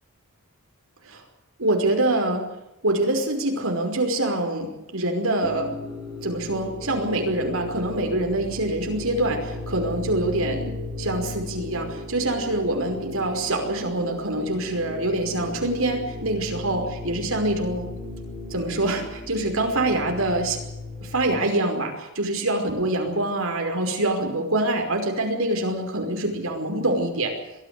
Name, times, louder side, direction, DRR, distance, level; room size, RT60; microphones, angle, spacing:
voice 1, 1.6-2.5 2.8-5.7 6.2-17.9 18.5-20.6 21.0-27.3, right 1 dB, 80° right, 3 dB, 5.4 m, -25 dB
sound 1, 5.4-21.4, left 1 dB, 20° left, 6.3 m, -35 dB
22.0 x 14.5 x 9.8 m, 0.93 s
head